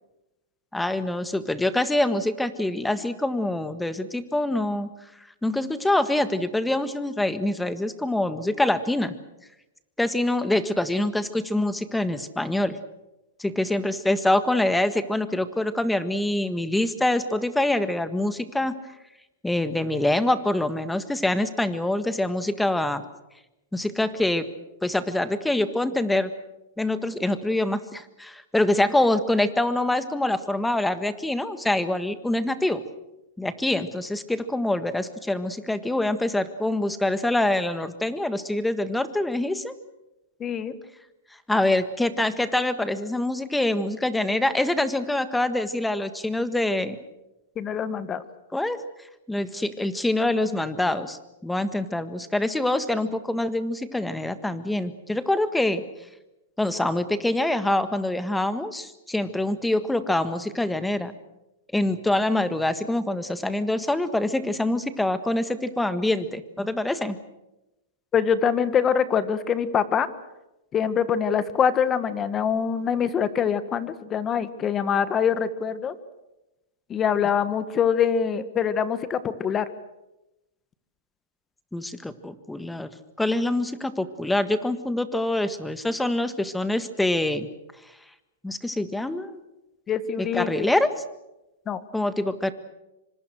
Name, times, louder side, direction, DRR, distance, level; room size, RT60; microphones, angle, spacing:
voice 1, 0.7-4.9 5.4-9.1 10.0-12.8 13.4-18.8 19.4-23.0 23.7-24.5 24.8-26.3 26.8-32.8 33.4-39.7 41.5-47.0 48.5-48.8 49.3-55.8 56.6-61.1 61.7-67.2 81.7-82.9 83.2-87.5 88.4-89.4 90.2-90.9 91.9-92.5, left 1 dB, 5° left, 11 dB, 1.6 m, -25 dB
voice 2, 40.4-40.7 47.5-48.2 68.1-70.1 70.7-75.9 76.9-79.7 89.9-90.6 91.7-91.8, left 7 dB, 25° left, 13 dB, 1.6 m, -24 dB
26.0 x 25.0 x 6.5 m, 0.95 s
hypercardioid pair, 135°, 0 cm